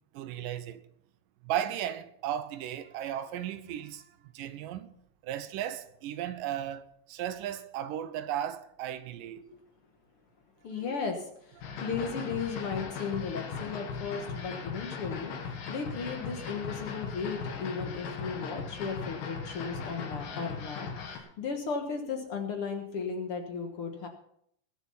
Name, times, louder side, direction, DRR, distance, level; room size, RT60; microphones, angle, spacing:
voice 1, 0.1-0.8 1.4-4.0 4.3-5.0 5.2-9.5 11.7-11.8, right 11 dB, 85° right, 2.5 m, -35 dB
voice 2, 10.6-24.1, left 5 dB, 55° left, 1.8 m, -36 dB
sound 1, 11.6-21.2, left 5 dB, 90° left, 3.4 m, -38 dB
21.5 x 7.2 x 5.6 m
omnidirectional pair, 3.8 m